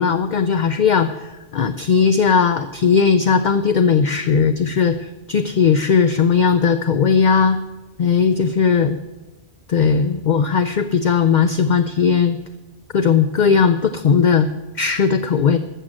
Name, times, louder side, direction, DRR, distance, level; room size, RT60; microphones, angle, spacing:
voice 1, 0.0-7.6 8.0-9.0 9.7-12.4 12.9-14.5 14.8-15.6, left 6 dB, 55° left, 10 dB, 0.6 m, -17 dB
13.5 x 6.4 x 7.5 m, 1.1 s
omnidirectional pair, 1.1 m